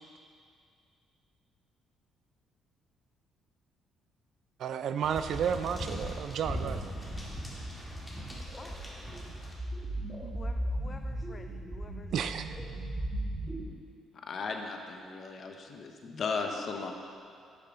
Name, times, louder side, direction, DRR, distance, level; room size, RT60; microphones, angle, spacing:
voice 1, 4.6-6.8 12.1-12.6, right 8 dB, 65° right, 10 dB, 0.4 m, -32 dB
sound 1, 5.0-9.5, equal, 5° left, 1.7 m, -39 dB
sound 2, 8.1-13.6, right 1 dB, 15° right, 1.7 m, -37 dB
voice 2, 10.3-12.3 16.4-16.9, left 3 dB, 25° left, 6 dB, 0.3 m, -50 dB
voice 3, 14.3-16.9, left 4 dB, 50° left, 3 dB, 0.9 m, -36 dB
9.7 x 6.6 x 3.7 m, 2.3 s
cardioid pair, 95°, 0 cm